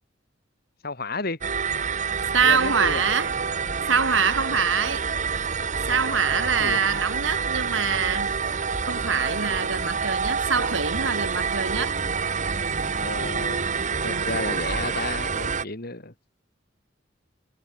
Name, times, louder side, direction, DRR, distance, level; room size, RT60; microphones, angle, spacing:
voice 1, 0.8-1.4 2.4-3.0 6.3-6.8 13.0-13.7 14.0-16.1, left 3 dB, 55° left, 3.1 m, -32 dB
sound 1, 1.4-15.6, right 5 dB, 40° right, 1.7 m, -27 dB
voice 2, 2.3-3.3 3.9-5.0 5.9-8.4 8.8-12.0 14.0-14.4, right 6 dB, 90° right, 3.3 m, -24 dB
head